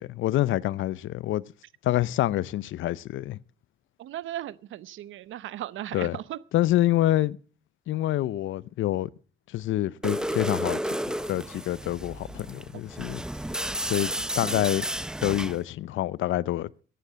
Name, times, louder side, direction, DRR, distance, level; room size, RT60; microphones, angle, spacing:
voice 1, 0.2-1.4 1.8-3.4 5.9-6.2 6.5-7.4 7.9-9.1 9.5-10.8 11.3-13.2 13.8-14.1 14.4-14.9 15.2-16.7, left 14 dB, 75° left, 0.6 m, -26 dB
voice 2, 4.0-6.4, right 13 dB, 80° right, 0.8 m, -36 dB
sound 1, 10.0-15.6, right 1 dB, 5° right, 0.7 m, -32 dB
14.5 x 9.5 x 7.4 m
cardioid pair, 90°, 20 cm